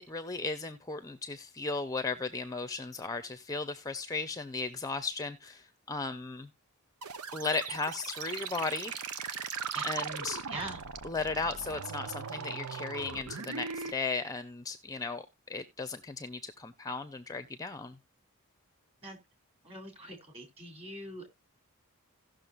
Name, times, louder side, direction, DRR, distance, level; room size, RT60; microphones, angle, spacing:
voice 1, 0.0-6.5 7.3-8.9 9.8-10.4 11.0-18.0, left 3 dB, 15° left, 0.7 m, -36 dB
sound 1, 7.0-13.9, right 6 dB, 90° right, 0.9 m, -39 dB
voice 2, 19.6-21.3, right 1 dB, 25° right, 3.3 m, -42 dB
17.0 x 6.4 x 2.5 m
head